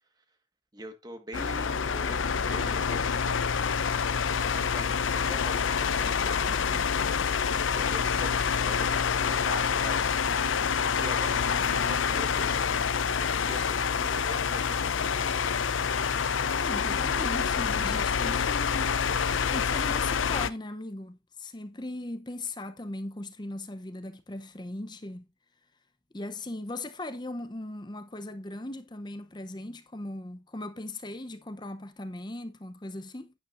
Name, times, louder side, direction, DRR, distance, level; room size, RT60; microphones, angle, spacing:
voice 1, 0.7-3.4 4.4-7.0 7.7-12.5 13.4-15.5, right 1 dB, 20° right, 1.5 m, -44 dB
sound 1, 1.3-20.5, left 6 dB, 85° left, 0.6 m, -27 dB
sound 2, 1.4-6.9, left 3 dB, 40° left, 2.7 m, -47 dB
voice 2, 16.6-18.9 19.5-25.3 26.1-33.3, left 1 dB, 20° left, 0.7 m, -38 dB
11.0 x 9.7 x 2.6 m
head